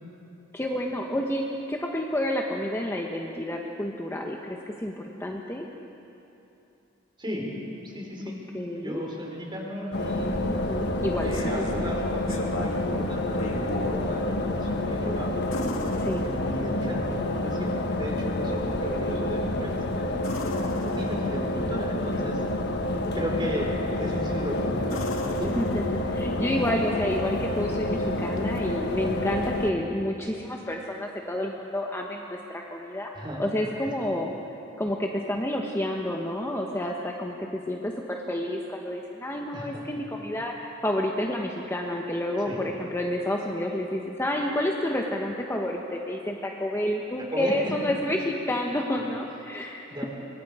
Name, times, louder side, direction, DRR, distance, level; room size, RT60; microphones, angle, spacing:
voice 1, 0.5-5.7 8.5-9.0 10.5-11.6 16.0-16.3 25.6-33.1 33.4-34.3 34.8-50.0, left 1 dB, 15° left, 0 dB, 1.2 m, -29 dB
voice 2, 7.8-8.4 8.8-10.4 11.2-20.3 20.8-22.4 23.1-25.5 33.1-33.4 39.5-39.8 42.5-42.6 47.3-47.5 49.9-50.1, equal, 25° right, -1 dB, 4.4 m, -35 dB
sound 1, 9.9-29.7, left 1 dB, 55° left, 1.3 m, -28 dB
sound 2, 11.2-11.8 12.3-12.9 13.3-14.0 15.5-16.8 20.2-21.5 24.0-24.4 24.9-26.3 28.4-28.5, left 1 dB, 85° left, 2.4 m, -37 dB
24.5 x 24.0 x 5.0 m, 2.9 s
head